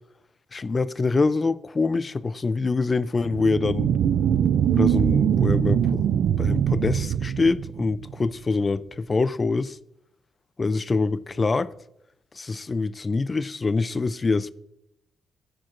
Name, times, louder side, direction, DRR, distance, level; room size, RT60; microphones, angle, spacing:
voice 1, 0.5-3.9 4.7-6.0 6.4-9.8 10.6-11.7 12.3-14.5, left 3 dB, 30° left, 0.3 m, -25 dB
sound 1, 3.3-8.2, right 9 dB, 70° right, 0.3 m, -22 dB
13.0 x 4.6 x 2.5 m
cardioid pair, 90°, 0 cm